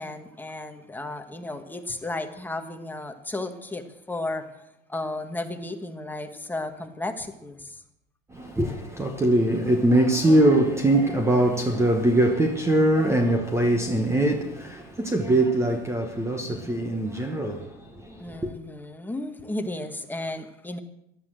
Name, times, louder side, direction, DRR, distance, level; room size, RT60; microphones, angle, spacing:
voice 1, 0.0-7.8 18.2-20.8, left 2 dB, 5° left, 1.3 m, -34 dB
voice 2, 8.3-18.5, right 1 dB, 10° right, 1.1 m, -22 dB
14.5 x 11.5 x 7.5 m
supercardioid pair, 150°, 30 cm